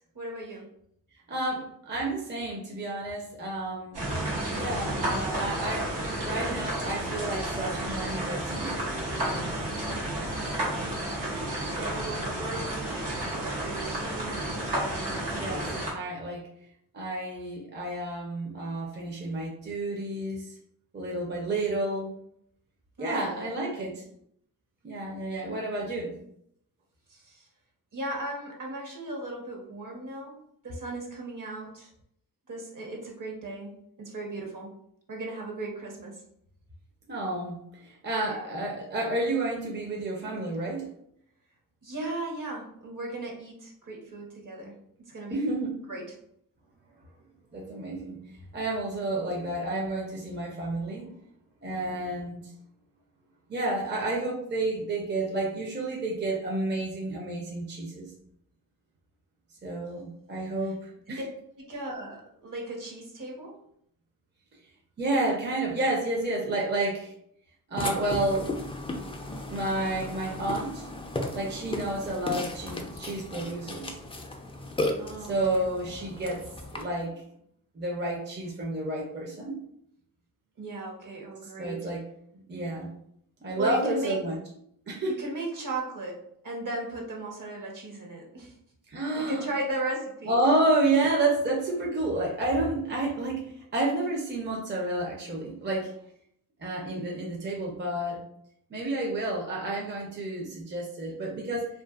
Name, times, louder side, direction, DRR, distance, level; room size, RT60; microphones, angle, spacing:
voice 1, 0.1-0.7 9.8-10.1 11.8-14.6 23.0-24.0 27.1-27.5 27.9-31.9 32.5-33.7 34.0-34.7 35.1-36.2 38.2-38.5 41.8-44.7 45.1-45.4 45.9-46.0 59.8-60.0 60.6-60.7 61.1-61.2 61.6-63.5 75.0-76.0 80.6-81.9 83.5-84.2 85.2-88.5 89.1-90.4, right 2 dB, 55° right, 0 dB, 0.9 m, -37 dB
voice 2, 1.3-4.0 4.5-8.7 15.3-16.5 16.9-20.6 20.9-22.1 23.0-24.0 24.8-26.2 37.1-40.9 45.3-45.8 47.5-48.2 48.5-51.1 51.6-52.4 53.5-58.1 59.6-61.2 65.0-67.1 67.7-68.5 69.5-70.8 71.3-74.0 75.2-76.4 76.7-77.2 77.8-79.6 81.6-82.0 82.5-82.9 83.4-84.4 84.9-85.2 88.9-89.4 90.3-93.4 93.7-95.9 96.6-98.2 98.7-101.7, right 2 dB, 30° right, -1 dB, 0.6 m, -30 dB
sound 1, 3.9-15.9, right 1 dB, 85° right, 0.9 m, -31 dB
Burping eructation, 67.8-76.8, left 2 dB, 15° left, 0.4 m, -35 dB
2.5 x 2.4 x 2.4 m, 0.71 s
cardioid pair, 55°, 38 cm